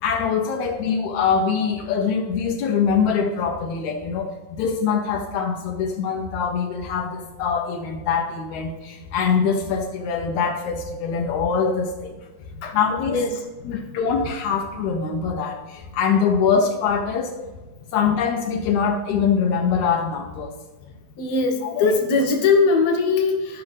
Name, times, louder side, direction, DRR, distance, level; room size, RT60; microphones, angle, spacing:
voice 1, 0.0-12.1 12.7-13.2 13.6-17.3 17.9-20.5 21.6-22.0, left 6 dB, 80° left, 1 dB, 1.7 m, -23 dB
voice 2, 12.6-13.3 13.6-13.7 21.2-23.6, left 4 dB, 60° left, 2 dB, 1.9 m, -21 dB
14.5 x 5.8 x 3.3 m, 1.2 s
omnidirectional pair, 4.2 m